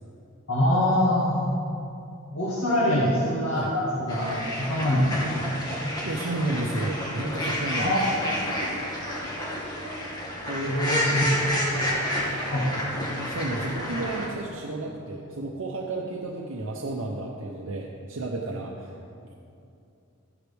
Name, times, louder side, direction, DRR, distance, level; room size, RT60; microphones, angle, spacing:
voice 1, 0.5-1.5 2.3-5.4 7.7-8.2 10.7-11.3 11.8-12.0 12.5-12.7, left 1 dB, 75° left, -7 dB, 2.0 m, -24 dB
voice 2, 2.9-3.2 3.5-3.7 5.8-8.0 10.5-10.8 13.2-18.9, right 2 dB, 70° right, -1 dB, 0.9 m, -32 dB
sound 1, 4.1-14.3, equal, 20° left, 2.0 m, -30 dB
13.5 x 11.0 x 3.5 m, 2.6 s
head